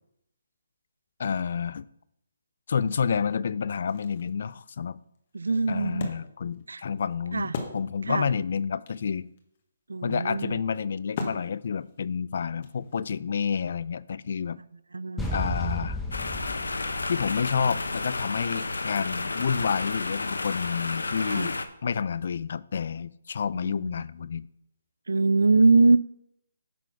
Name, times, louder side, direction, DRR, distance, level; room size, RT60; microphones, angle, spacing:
voice 1, 1.2-1.9 2.7-5.0 5.7-9.3 10.0-14.6 15.3-16.0 17.1-21.6 21.8-24.5, left 6 dB, 55° left, 19 dB, 0.3 m, -29 dB
Wood, 3.9-8.3 8.6-8.7 8.9-13.2, left 4 dB, 40° left, 1.3 m, -40 dB
voice 2, 5.3-6.1 6.7-6.8 7.3-7.5 8.1-8.3 9.9-10.6 14.9-15.3 21.3-21.5 23.6-23.9 25.1-26.0, right 3 dB, 85° right, 20 dB, 0.4 m, -23 dB
sound 1, 15.2-18.1, left 1 dB, 5° left, 0.9 m, -33 dB
sound 2, 16.1-21.7, left 3 dB, 90° left, 0.7 m, -31 dB
9.1 x 4.1 x 5.7 m, 0.79 s
hypercardioid pair, 155°, 0 cm